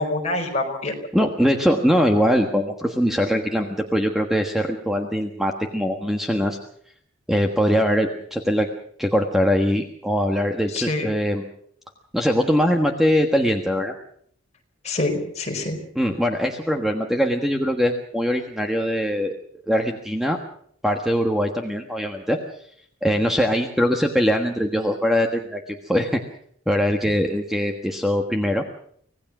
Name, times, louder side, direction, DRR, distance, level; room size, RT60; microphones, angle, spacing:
voice 1, 0.0-0.9 10.7-11.1 14.8-15.8, left 2 dB, 30° left, 2 dB, 4.7 m, -25 dB
voice 2, 1.1-6.6 7.3-8.7 9.0-11.5 12.1-13.9 15.9-19.3 19.7-20.4 20.8-22.4 23.0-26.2 26.7-28.6, equal, ahead, 3 dB, 1.4 m, -22 dB
25.5 x 18.0 x 6.1 m, 0.64 s
head